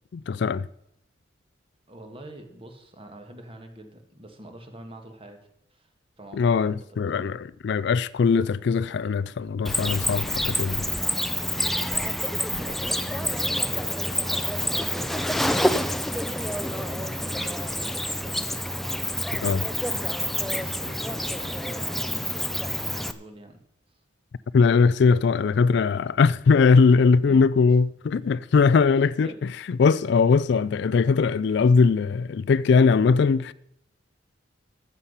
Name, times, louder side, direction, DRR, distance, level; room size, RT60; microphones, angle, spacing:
voice 1, 0.1-0.7 6.3-10.9 19.4-20.0 24.5-29.3 29.7-33.5, left 5 dB, 60° left, 0.3 m, -20 dB
voice 2, 1.9-5.4 5.7-5.9 6.2-7.0 12.5-18.5 20.4-23.6 27.2-27.4 29.2-29.4, right 1 dB, 30° right, 1.6 m, -44 dB
Cricket, 9.6-23.1, left 1 dB, ahead, 0.5 m, -27 dB
13.0 x 8.2 x 5.6 m
head